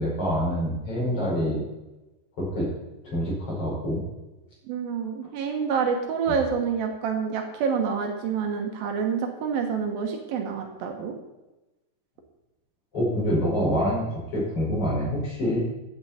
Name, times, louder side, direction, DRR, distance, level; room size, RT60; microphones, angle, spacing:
voice 1, 0.0-1.6 2.4-2.7 3.0-4.0 12.9-15.6, equal, 35° left, -5 dB, 5.9 m, -26 dB
voice 2, 4.7-11.1, right 6 dB, 75° right, 3 dB, 2.9 m, -27 dB
15.0 x 9.5 x 4.3 m, 1.0 s
omnidirectional pair, 4.4 m